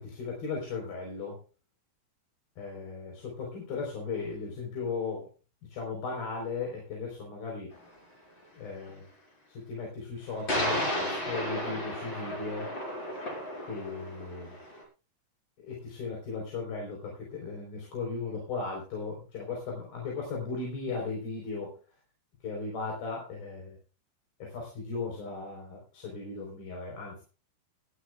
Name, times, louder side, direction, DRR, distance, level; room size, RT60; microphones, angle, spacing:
voice 1, 0.0-1.4 2.6-5.3 5.7-7.7 8.5-9.1 9.5-12.7 13.7-14.6 15.6-21.8 22.4-23.8 24.4-27.2, left 4 dB, 70° left, -1 dB, 6.1 m, -37 dB
sound 1, 7.7-7.8 10.5-14.8, equal, 30° left, 5.1 m, -33 dB
20.0 x 13.0 x 2.4 m, 0.33 s
omnidirectional pair, 4.4 m